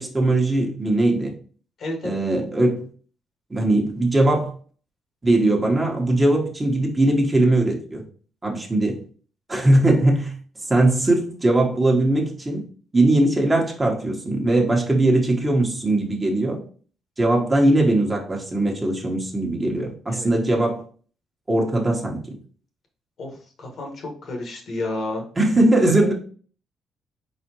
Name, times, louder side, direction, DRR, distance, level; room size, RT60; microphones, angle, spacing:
voice 1, 0.0-1.3 2.0-2.8 3.5-4.5 5.2-8.0 8.4-9.0 9.5-10.3 10.6-12.6 12.9-16.6 17.2-20.8 21.5-22.4 25.4-26.1, right 1 dB, 20° right, 0 dB, 1.2 m, -20 dB
voice 2, 1.8-2.2 20.1-20.3 23.2-23.3 23.6-25.2, left 2 dB, 60° left, 2 dB, 1.5 m, -30 dB
4.3 x 4.1 x 2.9 m, 0.42 s
cardioid pair, 90°, 0 cm